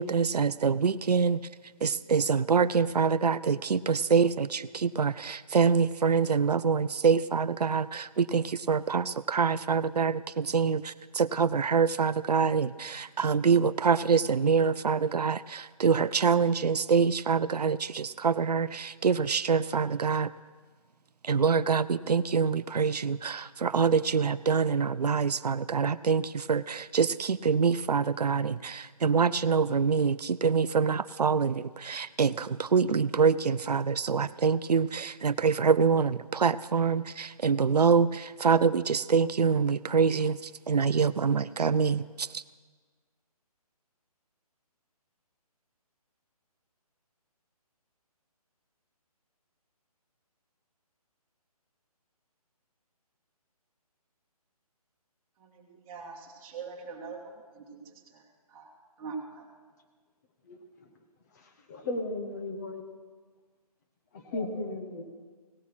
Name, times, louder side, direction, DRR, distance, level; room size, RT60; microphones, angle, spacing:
voice 1, 0.0-1.4 1.8-20.3 21.2-42.4, right 5 dB, 90° right, 16 dB, 0.5 m, -25 dB
voice 2, 55.4-57.8 58.1-58.2 58.5-58.7 59.0-59.5, right 5 dB, 15° right, -1 dB, 2.0 m, -42 dB
voice 3, 61.7-62.9 64.1-65.0, left 2 dB, 25° left, 5 dB, 1.2 m, -35 dB
17.0 x 11.0 x 6.2 m, 1.5 s
hypercardioid pair, 155°, 20 cm